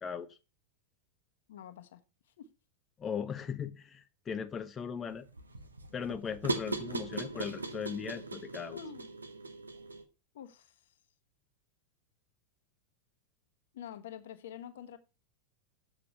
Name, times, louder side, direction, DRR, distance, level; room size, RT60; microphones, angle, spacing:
voice 1, 0.0-0.4 3.0-5.3 5.9-8.8, left 7 dB, 20° left, 0.6 m, -38 dB
voice 2, 1.5-2.0 2.4-2.5 8.7-9.1 10.3-10.9 13.7-15.0, left 9 dB, 60° left, 1.1 m, -47 dB
sound 1, 5.1-10.0, right 3 dB, 80° right, 1.1 m, -39 dB
8.3 x 6.0 x 5.8 m
figure-of-eight pair, 90°, 0 cm